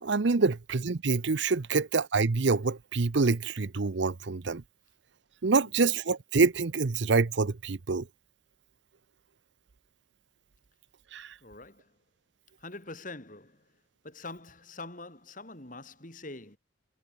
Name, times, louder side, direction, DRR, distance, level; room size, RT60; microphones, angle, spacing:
voice 1, 0.0-4.6 5.4-8.1 11.1-11.3, right 4 dB, 60° right, 0.7 m, -26 dB
voice 2, 11.4-11.9 12.6-13.7 14.0-16.6, left 2 dB, 40° left, 3.7 m, -44 dB
head